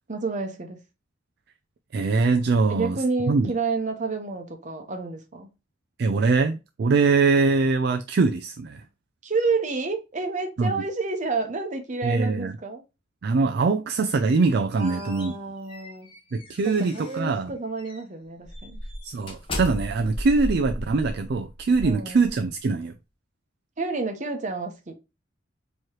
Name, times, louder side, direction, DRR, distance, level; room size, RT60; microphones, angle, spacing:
voice 1, 0.1-0.8 2.7-5.5 9.2-12.8 14.8-16.1 16.6-18.8 21.8-22.2 23.8-24.9, right 4 dB, 40° right, 0.9 m, -29 dB
voice 2, 1.9-3.0 3.3-3.5 6.0-8.8 10.6-10.7 12.0-12.6 13.2-15.3 16.3-17.5 19.0-22.9, right 4 dB, 55° right, 0.4 m, -23 dB
sound 1, 14.4-17.3 17.8-18.0 18.4-22.7, equal, 25° left, 1.1 m, -36 dB
4.7 x 3.0 x 2.9 m
head